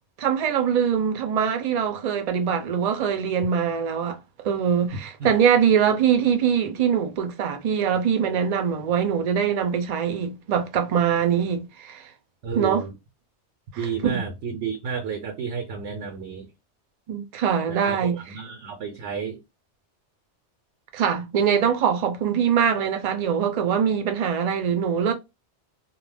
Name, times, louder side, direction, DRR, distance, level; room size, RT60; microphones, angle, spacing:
voice 1, 0.2-4.2 4.4-12.0 12.5-12.8 14.0-14.2 17.1-18.2 20.9-25.1, right 7 dB, 50° right, 0.5 m, -23 dB
voice 2, 12.4-12.9 13.8-16.5 17.7-19.4, right 6 dB, 90° right, 1.0 m, -31 dB
2.4 x 2.1 x 3.3 m
omnidirectional pair, 1.2 m